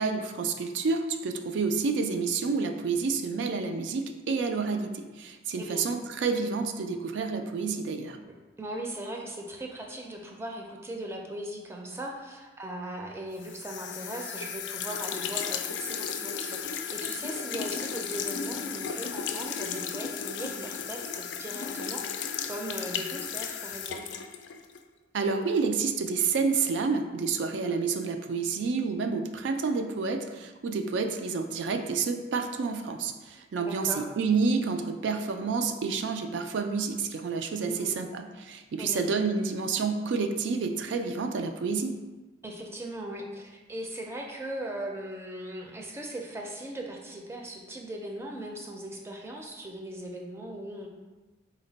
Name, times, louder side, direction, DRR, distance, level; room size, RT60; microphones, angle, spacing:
voice 1, 0.0-8.2 25.1-41.9, right 4 dB, 80° right, 6 dB, 0.4 m, -29 dB
voice 2, 8.6-24.0 33.6-34.1 37.6-38.0 38.8-39.0 42.4-50.9, right 1 dB, 15° right, 0 dB, 0.4 m, -39 dB
sound 1, 13.4-24.8, left 7 dB, 80° left, 0.3 m, -35 dB
4.0 x 2.1 x 3.9 m, 1.2 s
head